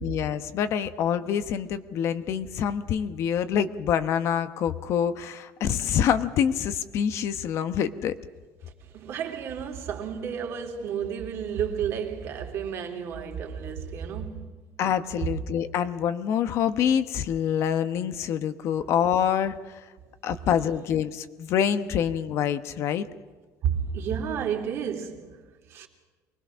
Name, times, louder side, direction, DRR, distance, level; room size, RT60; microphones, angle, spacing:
voice 1, 0.0-8.1 14.8-19.9 20.2-23.1, left 8 dB, 50° left, 1.0 m, -26 dB
voice 2, 8.9-14.5 15.2-15.3 23.6-25.4 25.7-25.9, right 8 dB, 45° right, 3.1 m, -31 dB
24.5 x 20.0 x 6.3 m
cardioid pair, 160°, 6 cm